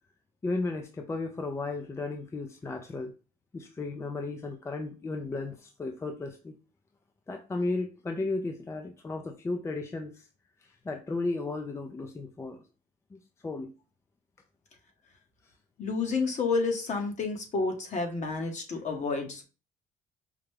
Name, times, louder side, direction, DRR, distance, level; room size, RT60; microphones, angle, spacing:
voice 1, 0.4-3.1 3.5-6.5 7.3-10.3 10.6-12.6 13.1-13.7, left 3 dB, 15° left, 4 dB, 0.4 m, -34 dB
voice 2, 15.8-19.4, left 4 dB, 45° left, 4 dB, 1.1 m, -30 dB
4.9 x 2.2 x 3.3 m, 0.33 s
cardioid pair, 110°, 17 cm